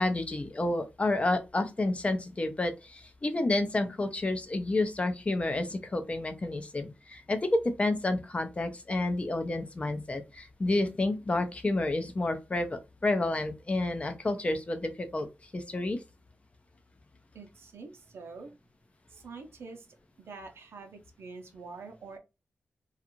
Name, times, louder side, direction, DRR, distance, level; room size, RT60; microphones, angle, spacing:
voice 1, 0.0-15.3 15.5-16.0, left 2 dB, 30° left, 7 dB, 0.5 m, -30 dB
voice 2, 17.3-18.5 19.1-19.9 20.2-22.2, right 4 dB, 75° right, 5 dB, 0.6 m, -46 dB
2.5 x 2.4 x 2.9 m, 0.25 s
wide cardioid pair, 95°, 4 cm